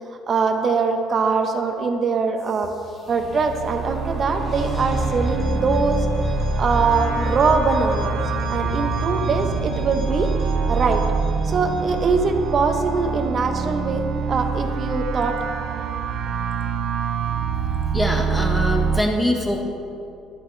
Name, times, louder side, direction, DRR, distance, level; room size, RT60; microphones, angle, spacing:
voice 1, 0.3-2.7 3.1-6.1 6.6-8.2 8.5-10.3 10.7-11.0 11.4-14.0 14.3-15.4, right 4 dB, 40° right, 5 dB, 1.0 m, -22 dB
sound 1, 2.4-13.2, left 2 dB, 40° left, 2.7 m, -31 dB
sound 2, 3.1-19.0, right 5 dB, 55° right, 0.5 m, -25 dB
voice 2, 17.9-19.6, left 1 dB, 10° left, 1 dB, 1.4 m, -23 dB
12.5 x 10.5 x 3.3 m, 2.7 s
cardioid pair, 115°, 0 cm